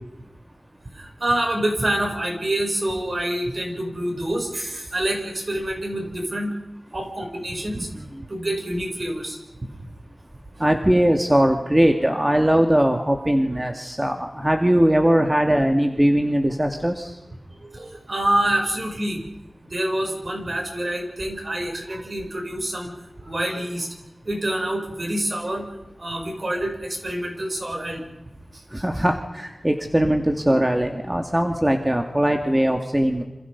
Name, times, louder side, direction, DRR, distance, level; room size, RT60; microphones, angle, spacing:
voice 1, 1.0-6.5 6.9-7.9 8.3-9.4 17.6-19.2 19.6-22.9 23.2-23.9 24.3-25.6 26.0-28.0 28.8-28.9, right 1 dB, 55° right, 1 dB, 7.6 m, -26 dB
voice 2, 10.6-17.1 28.7-33.2, equal, 15° right, 3 dB, 2.5 m, -20 dB
28.0 x 27.5 x 5.5 m, 1.0 s
wide cardioid pair, 55°, 0 cm